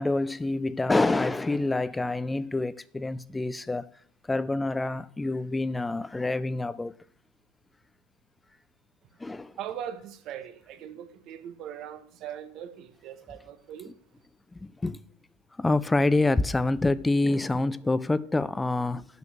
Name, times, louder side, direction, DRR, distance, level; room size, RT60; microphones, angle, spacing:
voice 1, 0.0-3.9 4.2-7.0 9.2-9.6 13.8-13.9 14.5-15.0 15.6-19.1, left 2 dB, 10° left, 0.4 m, -27 dB
voice 2, 9.6-13.9, right 9 dB, 55° right, 1.2 m, -40 dB
7.6 x 5.8 x 7.3 m
hypercardioid pair, 95°, 0 cm